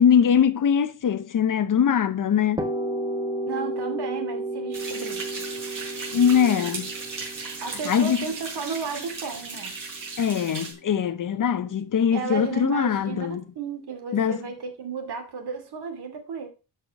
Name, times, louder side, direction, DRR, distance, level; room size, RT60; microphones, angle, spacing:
voice 1, 0.0-2.6 6.1-6.9 7.9-8.2 10.2-13.4 14.1-14.4, left 8 dB, 50° left, 0.8 m, -22 dB
sound 1, 2.6-10.3, right 1 dB, 10° right, 1.4 m, -33 dB
voice 2, 3.4-5.5 7.6-9.8 12.1-16.5, right 6 dB, 75° right, 2.6 m, -33 dB
sound 2, 4.7-10.7, right 4 dB, 55° right, 4.6 m, -36 dB
12.0 x 5.7 x 4.7 m
wide cardioid pair, 170°, 40 cm